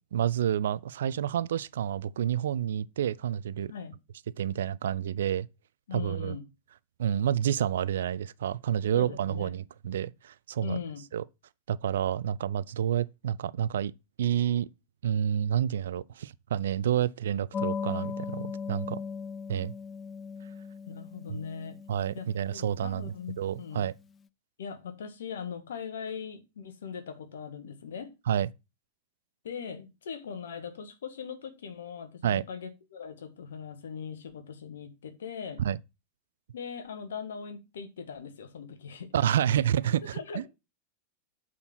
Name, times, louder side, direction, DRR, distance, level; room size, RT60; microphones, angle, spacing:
voice 1, 0.1-3.7 4.4-5.5 5.9-6.4 7.0-10.8 11.1-11.2 11.7-13.9 14.2-14.7 15.0-19.0 19.5-19.7 21.9-23.1 23.4-23.9 28.3-28.5 32.2-32.4 35.6-35.8 39.1-40.4, right 10 dB, 60° right, 0.4 m, -29 dB
voice 2, 5.9-6.5 8.9-9.5 10.6-11.0 20.9-21.8 22.1-23.9 24.6-28.1 29.4-35.6 36.5-39.1 40.1-40.5, left 6 dB, 65° left, 1.5 m, -40 dB
sound 1, 17.5-23.7, left 6 dB, 25° left, 0.4 m, -38 dB
8.5 x 4.3 x 5.9 m
figure-of-eight pair, 90°, 0 cm